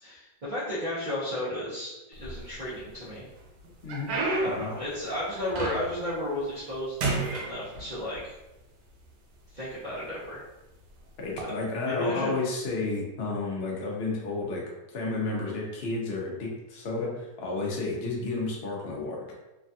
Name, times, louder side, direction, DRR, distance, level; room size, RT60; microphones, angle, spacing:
voice 1, 0.0-3.3 4.4-8.3 9.5-10.4 11.8-12.3, left 1 dB, 60° right, -11 dB, 0.4 m, -33 dB
sound 1, 2.1-2.9 3.4-6.1 6.5-6.7 7.0-8.2 9.0-9.1 9.8-10.1 11.2-11.4, right 2 dB, 85° right, 1.3 m, -32 dB
voice 2, 3.8-4.1 4.4-4.7 11.2-14.6 14.9-19.3, left 3 dB, 75° left, -2 dB, 0.5 m, -31 dB
3.2 x 2.2 x 2.6 m, 1.0 s
omnidirectional pair, 1.9 m